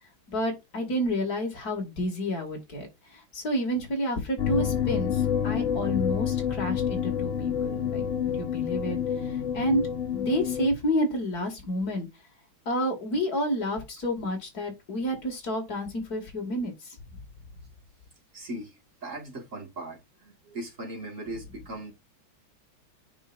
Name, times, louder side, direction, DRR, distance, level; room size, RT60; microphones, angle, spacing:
voice 1, 0.3-2.9 3.3-8.0 8.3-9.0 9.5-9.8 10.1-12.1 12.7-16.9, equal, 50° left, 2.7 m, -29 dB
sound 1, 4.4-10.7, left 8 dB, 90° left, 0.5 m, -28 dB
voice 2, 18.3-18.7 19.0-20.0 20.2-21.9, right 1 dB, 40° right, 2.3 m, -38 dB
9.0 x 5.1 x 2.5 m
omnidirectional pair, 2.2 m